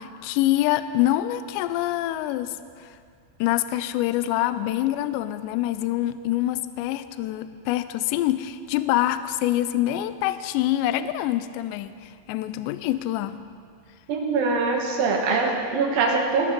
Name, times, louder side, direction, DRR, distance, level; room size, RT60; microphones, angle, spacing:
voice 1, 0.0-2.6 3.4-11.9 12.3-13.4, left 14 dB, 85° left, 12 dB, 2.5 m, -25 dB
voice 2, 14.1-16.5, right 4 dB, 65° right, 0 dB, 2.5 m, -23 dB
21.0 x 14.0 x 3.7 m, 2.2 s
omnidirectional pair, 5.6 m